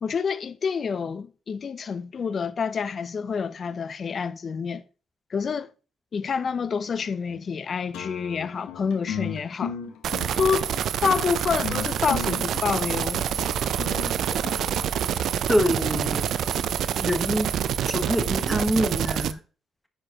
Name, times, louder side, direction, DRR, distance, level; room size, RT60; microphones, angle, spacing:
voice 1, 0.0-4.8 5.3-5.7 6.1-9.7 10.4-10.7 11.0-13.2 14.3-14.4, left 6 dB, 45° left, 0.5 m, -28 dB
sound 1, 7.9-15.3, left 7 dB, 90° left, 1.2 m, -36 dB
sound 2, 10.0-19.3, right 9 dB, 70° right, 0.4 m, -27 dB
voice 2, 15.5-16.3 17.0-17.5 17.9-19.4, equal, 5° left, 1.1 m, -25 dB
9.7 x 4.6 x 2.9 m
cardioid pair, 90°, 0 cm